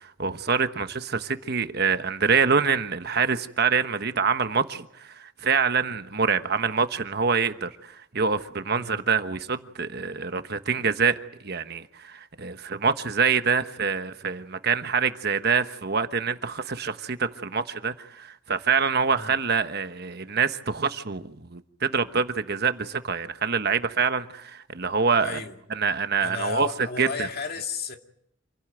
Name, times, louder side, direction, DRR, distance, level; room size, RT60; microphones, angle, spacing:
voice 1, 0.0-11.2 11.4-25.4 25.7-26.7 27.0-27.3, right 5 dB, 55° right, 1.2 m, -25 dB
voice 2, 8.7-9.0 19.1-19.3 25.2-25.6 26.2-28.0, left 4 dB, 50° left, 2.4 m, -33 dB
27.5 x 17.0 x 9.1 m
head